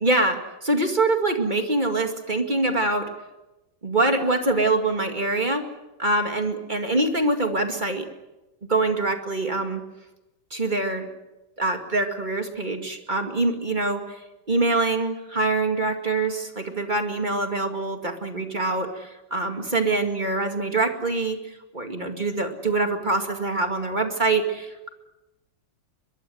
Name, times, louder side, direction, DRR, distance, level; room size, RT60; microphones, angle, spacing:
voice 1, 0.0-0.4 0.6-3.1 3.8-5.6 6.0-8.1 8.7-9.8 10.5-11.1 11.6-14.0 14.5-21.4 21.7-24.9, right 2 dB, 25° right, 5 dB, 2.2 m, -24 dB
23.0 x 22.5 x 7.9 m, 0.99 s
omnidirectional pair, 2.1 m